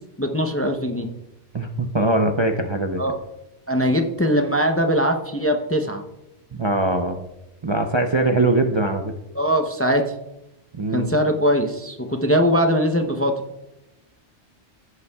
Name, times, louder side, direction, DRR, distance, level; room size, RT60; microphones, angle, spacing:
voice 1, 0.2-1.1 3.0-3.2 3.7-6.0 9.3-10.1 10.9-13.4, equal, 15° left, 4 dB, 0.6 m, -21 dB
voice 2, 1.5-3.0 6.6-7.2 7.6-9.0 10.8-11.1, right 2 dB, 35° right, 4 dB, 0.5 m, -21 dB
16.0 x 8.2 x 2.3 m, 0.92 s
omnidirectional pair, 1.2 m